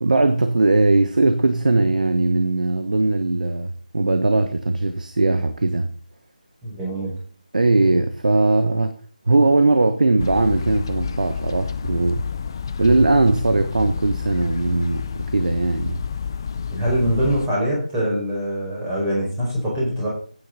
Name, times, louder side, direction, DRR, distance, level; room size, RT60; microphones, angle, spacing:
voice 1, 0.0-5.9 7.5-9.0 9.3-12.3 12.8-16.0, right 2 dB, 65° right, 1.1 m, -19 dB
voice 2, 6.6-7.1 16.7-20.1, equal, 10° right, 5.1 m, -23 dB
sound 1, 10.2-17.5, left 6 dB, 30° left, 0.6 m, -29 dB
13.0 x 9.5 x 4.0 m
figure-of-eight pair, 165°, 5 cm